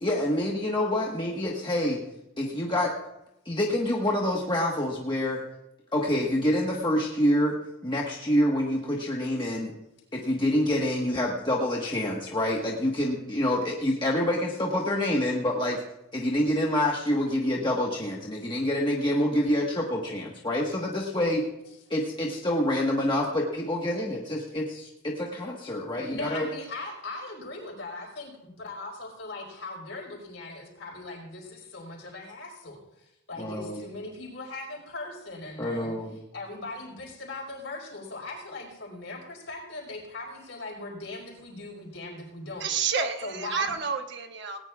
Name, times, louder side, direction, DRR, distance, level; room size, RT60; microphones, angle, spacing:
voice 1, 0.0-2.0 2.4-2.9 3.4-5.4 5.9-7.6 7.8-9.7 10.1-15.8 16.1-21.4 21.9-26.5 33.4-33.8 35.6-36.2, left 1 dB, 20° left, -2 dB, 1.4 m, -27 dB
voice 2, 26.1-35.9 36.3-42.7 43.2-43.7, left 2 dB, 55° left, 0 dB, 4.6 m, -39 dB
voice 3, 42.6-44.6, right 6 dB, 55° right, 5 dB, 1.1 m, -29 dB
18.5 x 18.5 x 2.4 m, 0.90 s
head